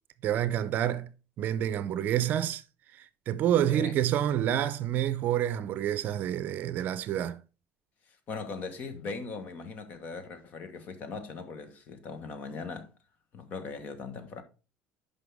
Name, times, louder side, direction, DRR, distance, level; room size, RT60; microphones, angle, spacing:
voice 1, 0.2-1.1 1.4-2.6 2.9-7.4, right 11 dB, 45° right, 0.6 m, -28 dB
voice 2, 8.1-12.9 13.3-14.4, left 4 dB, 40° left, 1.4 m, -40 dB
10.0 x 5.5 x 3.5 m
cardioid pair, 155°, 4 cm